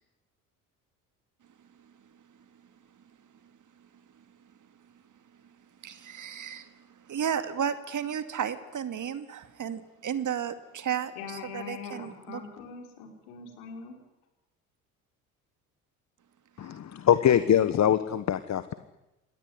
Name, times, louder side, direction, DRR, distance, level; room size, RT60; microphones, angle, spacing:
voice 1, 5.8-6.7 7.1-12.4, right 8 dB, 40° right, 11 dB, 2.4 m, -33 dB
voice 2, 11.2-14.0, left 5 dB, 70° left, 4 dB, 5.2 m, -42 dB
voice 3, 16.6-18.7, left 9 dB, 40° left, 13 dB, 1.3 m, -23 dB
26.5 x 19.5 x 9.7 m, 0.97 s
figure-of-eight pair, 55°, 45 cm